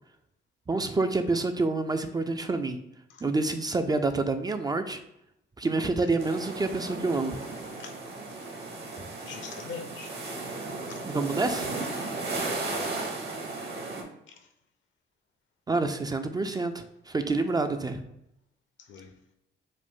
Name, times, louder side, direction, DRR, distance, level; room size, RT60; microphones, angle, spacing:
voice 1, 0.7-2.8 3.2-5.0 5.6-7.4 11.0-11.8 15.7-18.0, right 3 dB, 20° right, 7 dB, 0.3 m, -28 dB
sound 1, 6.2-14.0, right 3 dB, 55° right, 1.1 m, -35 dB
voice 2, 9.2-10.1 10.9-11.1 12.5-13.0 14.3-14.5 18.8-19.1, left 6 dB, 70° left, 6 dB, 0.7 m, -43 dB
5.0 x 2.0 x 3.6 m, 0.81 s
cardioid pair, 90°, 20 cm